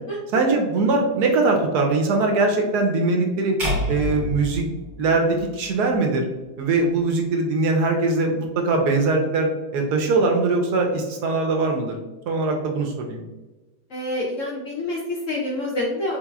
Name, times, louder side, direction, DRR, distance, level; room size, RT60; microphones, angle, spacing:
voice 1, 0.3-3.6 3.9-4.6 5.0-6.3 6.6-12.0 12.3-13.2, right 3 dB, 70° right, 2 dB, 1.0 m, -21 dB
sound 1, 3.6-5.9, left 1 dB, 30° right, 1.3 m, -28 dB
voice 2, 13.9-16.2, left 1 dB, 65° left, -3 dB, 0.8 m, -27 dB
3.9 x 2.9 x 2.3 m, 1.1 s
omnidirectional pair, 1.9 m